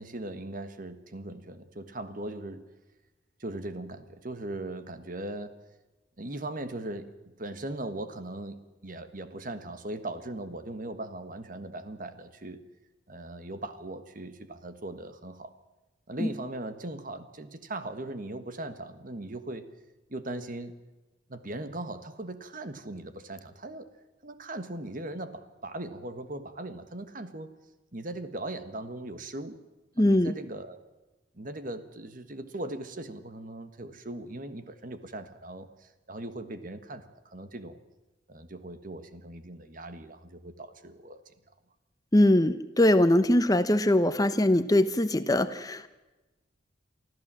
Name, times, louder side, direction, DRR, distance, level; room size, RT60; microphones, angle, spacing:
voice 1, 0.0-2.6 3.4-5.6 6.2-12.6 13.1-15.5 16.1-19.7 20.1-20.7 21.3-23.9 24.2-27.5 27.9-29.6 30.0-30.8 31.3-37.8 38.3-41.3, right 1 dB, 45° right, 10 dB, 1.6 m, -39 dB
voice 2, 30.0-30.3 42.1-45.9, left 1 dB, 20° left, 12 dB, 0.7 m, -22 dB
24.5 x 14.5 x 7.6 m, 1.1 s
head